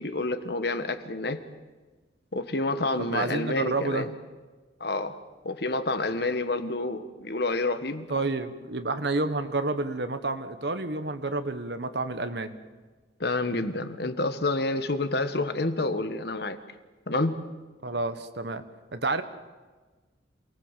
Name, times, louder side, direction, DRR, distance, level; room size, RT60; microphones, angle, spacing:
voice 1, 0.0-1.4 2.3-4.1 4.8-5.2 5.4-8.1 13.2-16.6 17.1-17.4, left 2 dB, 60° left, 10 dB, 1.6 m, -28 dB
voice 2, 3.0-4.1 8.1-12.6 17.8-18.6 18.9-19.2, right 3 dB, 65° right, 9 dB, 1.3 m, -29 dB
28.0 x 18.5 x 7.5 m, 1.3 s
head